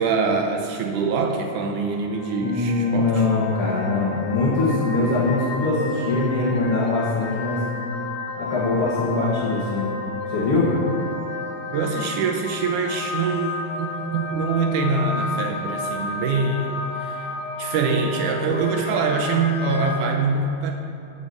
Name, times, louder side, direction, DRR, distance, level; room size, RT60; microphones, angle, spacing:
voice 1, 0.0-3.3 11.7-17.3 17.6-20.7, right 4 dB, 75° right, 3 dB, 2.0 m, -24 dB
sound 1, 1.8-20.0, left 3 dB, 70° left, 1.3 m, -32 dB
voice 2, 2.4-7.6 8.4-9.9 10.3-10.8, left 3 dB, 45° left, -7 dB, 2.4 m, -22 dB
12.5 x 7.0 x 7.1 m, 2.7 s
omnidirectional pair, 4.1 m